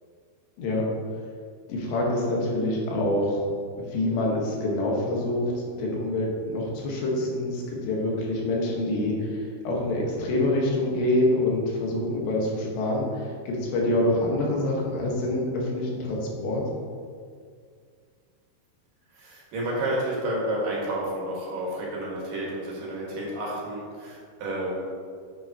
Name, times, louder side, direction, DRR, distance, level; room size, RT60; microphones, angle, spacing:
voice 1, 1.7-3.4 3.8-16.6, left 1 dB, 90° left, -2 dB, 3.6 m, -26 dB
voice 2, 19.1-24.9, right 1 dB, 60° right, -4 dB, 3.1 m, -30 dB
9.3 x 7.8 x 2.9 m, 2.1 s
omnidirectional pair, 4.7 m